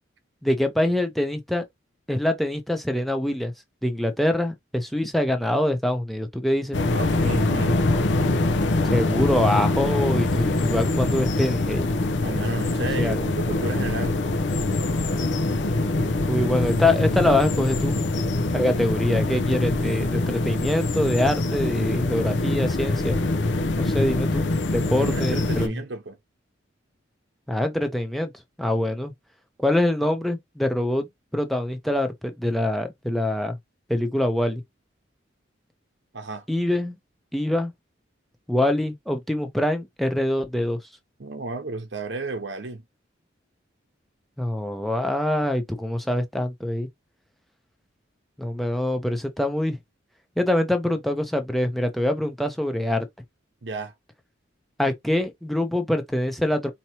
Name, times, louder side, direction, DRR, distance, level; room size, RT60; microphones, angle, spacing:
voice 1, 0.4-1.7 2.1-3.5 3.8-6.8 8.8-11.9 13.0-13.3 16.3-18.0 18.5-23.2 23.8-25.7 27.5-28.3 28.6-29.1 29.6-31.1 31.3-33.6 33.9-34.6 36.5-37.0 37.3-37.7 38.5-40.8 44.4-46.9 48.4-49.8 50.4-53.1 54.8-56.7, left 1 dB, ahead, 0.6 m, -24 dB
sound 1, 6.7-25.7, left 2 dB, 65° left, 0.6 m, -24 dB
voice 2, 6.9-7.8 12.2-14.2 25.0-26.2 36.1-36.4 41.2-42.8 53.6-53.9, right 3 dB, 60° right, 0.9 m, -32 dB
4.5 x 2.9 x 2.8 m
head